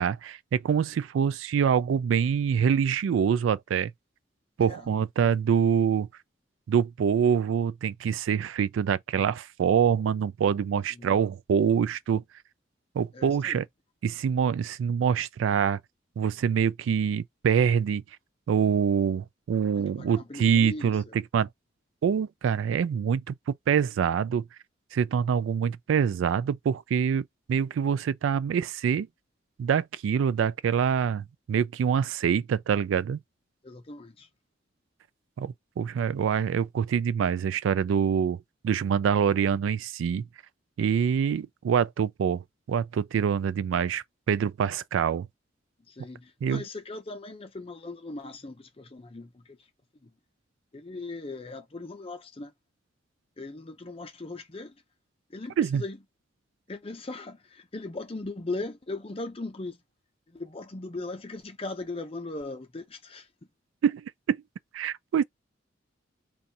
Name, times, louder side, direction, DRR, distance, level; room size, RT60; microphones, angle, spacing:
voice 1, 0.0-3.9 4.6-6.1 6.7-12.2 12.9-13.6 14.0-15.8 16.2-18.0 18.5-21.0 21.3-21.5 22.0-24.5 24.9-29.1 29.6-33.2 35.4-40.3 40.8-42.4 42.7-45.3 46.4-46.6 55.6-55.8 63.8-64.4 64.7-65.2, right 7 dB, 85° right, 0.3 m, -25 dB
voice 2, 13.1-13.6 19.8-21.2 33.6-34.3 45.9-49.7 50.0-50.1 50.7-52.5 53.4-54.8 55.3-56.0 56.7-59.8 60.3-63.3, left 2 dB, 30° left, 0.6 m, -39 dB
2.6 x 2.4 x 4.0 m
head